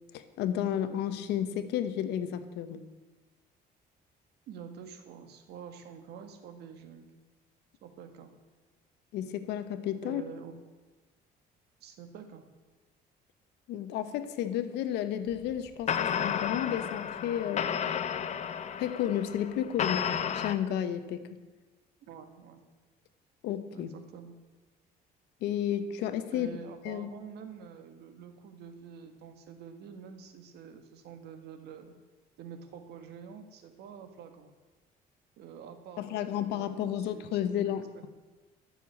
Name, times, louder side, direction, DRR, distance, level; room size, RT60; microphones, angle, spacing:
voice 1, 0.1-2.9 9.1-10.2 13.7-17.8 18.8-21.4 23.4-23.9 25.4-26.5 26.8-27.1 36.0-38.1, left 10 dB, 85° left, 10 dB, 1.1 m, -32 dB
voice 2, 4.5-7.1 7.8-8.3 10.0-10.5 11.8-12.5 22.0-22.6 23.7-24.3 26.3-31.9 32.4-34.5 35.4-37.3 37.6-38.1, right 7 dB, 75° right, 7 dB, 1.7 m, -47 dB
sound 1, 15.3-15.5 15.9-20.5, left 8 dB, 45° left, 0.8 m, -32 dB
13.0 x 7.0 x 8.5 m, 1.2 s
cardioid pair, 110°, 17 cm